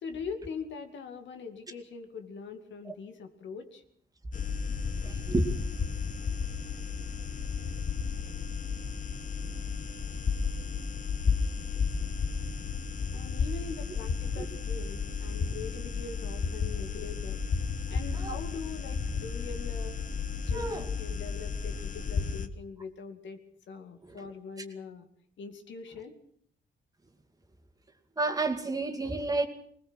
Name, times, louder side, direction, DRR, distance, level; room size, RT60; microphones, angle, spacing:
voice 1, 0.0-3.8 13.1-17.4 17.9-20.0 20.3-23.4 23.7-25.1 25.4-26.2, left 5 dB, 75° left, 2.4 m, -42 dB
sound 1, 4.3-22.5, left 5 dB, 40° left, 1.4 m, -33 dB
voice 2, 5.0-5.5 14.4-14.5 18.2-18.4 20.5-20.8 24.0-24.2 28.2-29.5, right 2 dB, 20° right, 2.5 m, -30 dB
20.5 x 20.0 x 6.4 m
cardioid pair, 100°, 19 cm